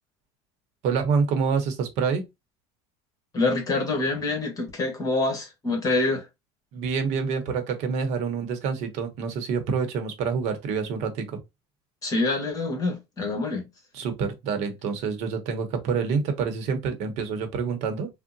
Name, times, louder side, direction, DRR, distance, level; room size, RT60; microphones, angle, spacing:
voice 1, 0.8-2.2 6.7-11.4 13.9-18.1, right 5 dB, 65° right, 0.8 m, -27 dB
voice 2, 3.3-6.3 12.0-13.7, left 3 dB, 30° left, 1.2 m, -26 dB
3.6 x 2.1 x 2.6 m
cardioid pair, 135°, 13 cm